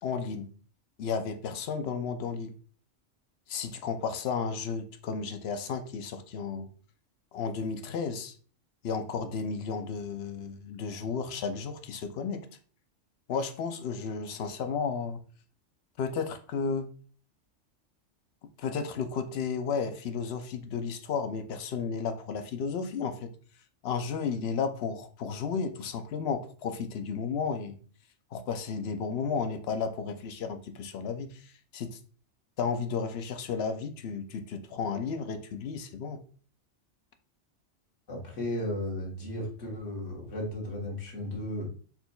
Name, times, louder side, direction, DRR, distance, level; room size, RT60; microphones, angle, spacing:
voice 1, 0.0-0.5 1.0-2.5 3.5-6.7 7.3-8.4 8.8-12.5 13.3-15.2 16.0-16.9 18.6-23.3 23.8-27.8 28.3-32.0 32.6-36.2, left 5 dB, 65° left, 0.7 m, -33 dB
voice 2, 38.1-41.7, left 1 dB, 85° left, 1.6 m, -35 dB
4.3 x 3.9 x 2.2 m
omnidirectional pair, 1.3 m